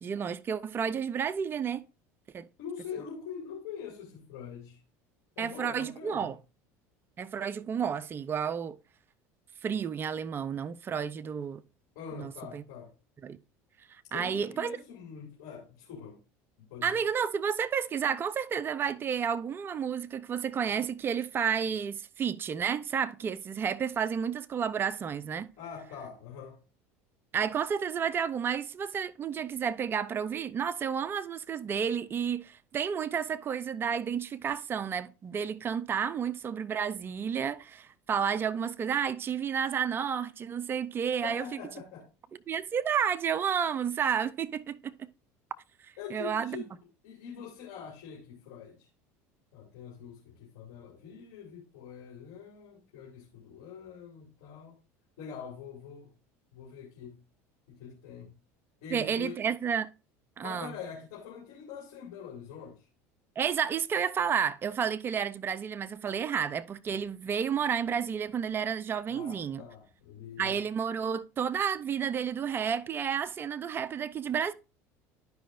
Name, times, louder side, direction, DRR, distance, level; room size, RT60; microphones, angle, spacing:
voice 1, 0.0-1.9 2.3-2.5 5.4-6.4 7.2-8.8 9.6-11.6 12.1-12.6 13.2-13.4 13.9-14.8 16.8-25.5 27.3-41.4 42.5-44.9 45.8-46.6 58.9-59.9 60.4-60.7 63.4-69.6 70.4-74.5, right 7 dB, 30° right, 0.4 m, -31 dB
voice 2, 2.6-4.8 5.4-6.3 11.9-12.9 14.1-16.2 16.6-16.9 25.6-26.6 41.2-42.1 46.0-48.9 49.5-54.8 55.2-56.1 56.5-57.2 57.7-58.3 58.8-59.4 60.4-62.9 69.1-70.6, left 7 dB, 75° left, 2.6 m, -44 dB
12.5 x 5.0 x 2.5 m
supercardioid pair, 105°, 8 cm